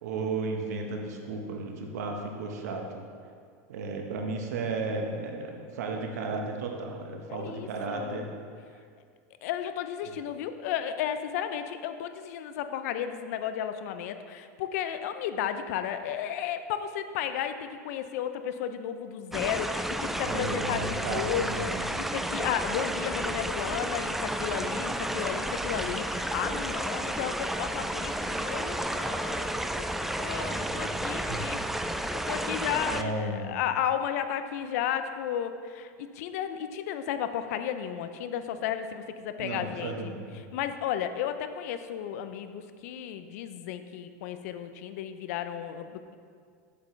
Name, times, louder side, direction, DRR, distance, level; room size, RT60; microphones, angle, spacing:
voice 1, 0.0-3.0 3.7-8.3 20.2-21.8 31.3-31.4 32.9-33.6 39.4-40.3, right 3 dB, 80° right, 3 dB, 1.2 m, -34 dB
voice 2, 7.3-8.3 9.4-29.6 29.9-40.1 40.5-46.1, left 9 dB, 70° left, 10 dB, 0.5 m, -33 dB
sound 1, 19.3-33.0, right 1 dB, 5° right, 0.3 m, -32 dB
8.2 x 8.0 x 3.3 m, 2.1 s
supercardioid pair, 120°, 9 cm